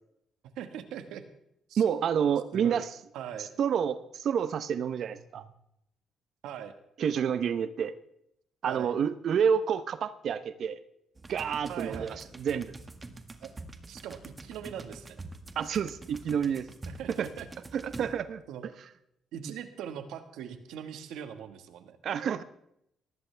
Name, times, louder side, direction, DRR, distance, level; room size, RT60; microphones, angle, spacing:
voice 1, 0.6-1.2 1.7-1.8 2.5-2.8 3.1-3.5 6.4-6.7 8.7-8.9 11.7-12.2 13.4-13.5 13.9-15.2 16.9-17.5 18.5-18.7 19.3-22.0, right 9 dB, 85° right, 9 dB, 1.6 m, -41 dB
voice 2, 1.8-2.9 3.4-5.4 7.0-8.0 8.6-10.8 11.3-12.7 15.6-16.7 17.2-17.3 17.7-18.4 19.4-19.5 22.0-22.4, right 7 dB, 65° right, 13 dB, 0.9 m, -29 dB
sound 1, 11.2-18.5, right 2 dB, 25° right, 1.7 m, -46 dB
18.5 x 15.0 x 3.4 m, 0.76 s
cardioid pair, 90°, 0 cm